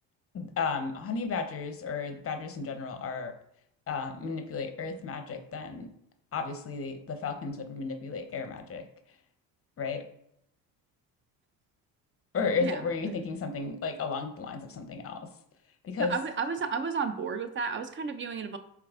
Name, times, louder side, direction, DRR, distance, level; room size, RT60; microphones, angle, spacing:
voice 1, 0.3-3.3 3.9-5.9 6.3-8.8 9.8-10.0 12.3-15.3 15.8-16.1, left 5 dB, 30° left, 8 dB, 0.6 m, -33 dB
voice 2, 16.0-18.6, right 5 dB, 30° right, 10 dB, 0.3 m, -32 dB
4.7 x 3.3 x 2.3 m, 0.74 s
hypercardioid pair, 60°, 46 cm